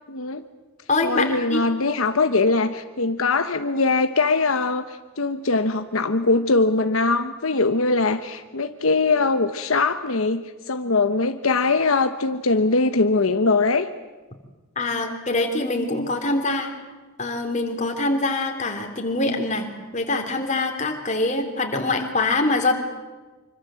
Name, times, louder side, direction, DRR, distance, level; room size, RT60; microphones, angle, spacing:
voice 1, 0.1-0.4 1.0-13.9, left 3 dB, 80° left, 8 dB, 1.1 m, -21 dB
voice 2, 0.9-1.6 14.7-16.7 17.2-22.7, left 2 dB, 35° left, 4 dB, 3.4 m, -24 dB
26.0 x 25.0 x 7.7 m, 1.2 s
head